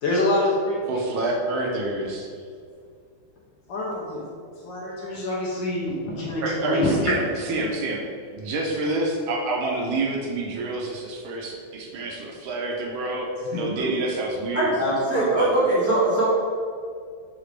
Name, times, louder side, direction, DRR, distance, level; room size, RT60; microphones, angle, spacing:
voice 1, 0.0-1.0 3.7-4.2 4.6-7.1 13.5-13.6 14.8-15.6, left 1 dB, 70° left, -4 dB, 1.2 m, -26 dB
voice 2, 0.9-2.3 6.4-8.0 8.3-14.7 15.3-15.5, right 2 dB, 80° right, 0 dB, 1.4 m, -28 dB
voice 3, 15.1-16.3, right 2 dB, 10° left, -12 dB, 1.1 m, -21 dB
4.7 x 2.5 x 3.1 m, 2.2 s
omnidirectional pair, 2.3 m